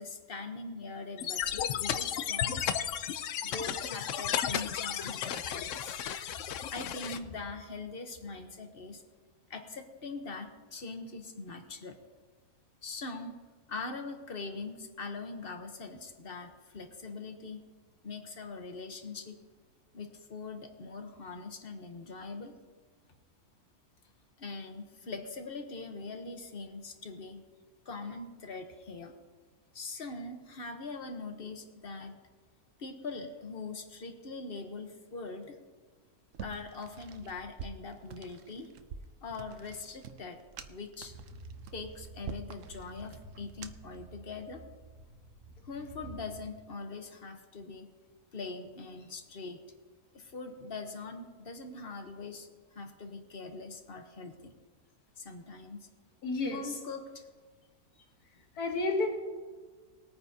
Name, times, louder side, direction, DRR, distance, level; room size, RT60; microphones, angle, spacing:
voice 1, 0.0-2.7 3.4-6.0 6.3-9.0 9.5-12.0 12.8-13.4 13.7-17.6 18.0-19.3 19.9-22.5 24.4-27.4 27.8-29.1 29.7-32.2 32.8-35.6 36.4-38.7 39.2-40.4 40.7-41.1 41.7-44.6 45.6-47.9 48.3-49.6 50.1-54.5 55.2-55.9 56.5-57.3 58.0-58.1, left 3 dB, 45° left, 5 dB, 1.1 m, -42 dB
sound 1, 1.2-7.2, left 9 dB, 65° left, 0.9 m, -34 dB
sound 2, 36.3-44.0, right 7 dB, 65° right, 1.0 m, -47 dB
sound 3, 41.0-46.4, right 2 dB, 25° right, 1.1 m, -51 dB
voice 2, 56.2-56.7 58.6-59.1, left 3 dB, 85° left, 2 dB, 1.9 m, -30 dB
20.0 x 9.3 x 2.8 m, 1.4 s
omnidirectional pair, 1.6 m